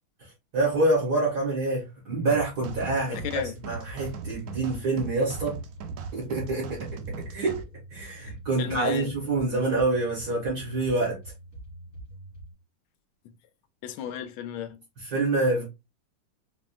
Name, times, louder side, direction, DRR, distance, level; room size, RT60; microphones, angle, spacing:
voice 1, 0.5-3.2 3.6-5.6 6.1-7.6 7.9-11.2 15.1-15.6, right 2 dB, 50° right, 2.2 m, -26 dB
sound 1, 2.3-7.6, right 5 dB, 85° right, 0.8 m, -39 dB
sound 2, 2.8-12.5, right 1 dB, 35° right, 2.5 m, -45 dB
voice 2, 3.1-3.5 8.2-8.3 8.6-9.1 13.2-13.3 13.8-14.8, left 9 dB, 80° left, 1.4 m, -34 dB
4.8 x 2.7 x 2.3 m
omnidirectional pair, 2.2 m